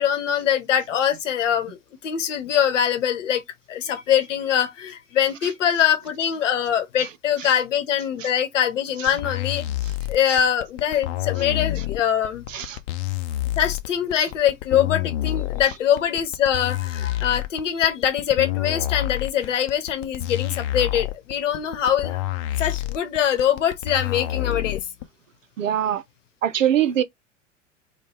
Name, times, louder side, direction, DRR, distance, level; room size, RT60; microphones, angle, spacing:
voice 1, 0.0-3.4 3.7-9.6 10.1-12.4 13.6-22.2 22.6-24.8, left 9 dB, 75° left, 1.0 m, -23 dB
sound 1, 9.1-25.0, left 15 dB, 55° left, 0.6 m, -28 dB
voice 2, 12.5-12.8 25.6-26.0 26.4-27.0, right 10 dB, 85° right, 0.6 m, -23 dB
3.1 x 2.2 x 3.2 m
figure-of-eight pair, 75°, 38 cm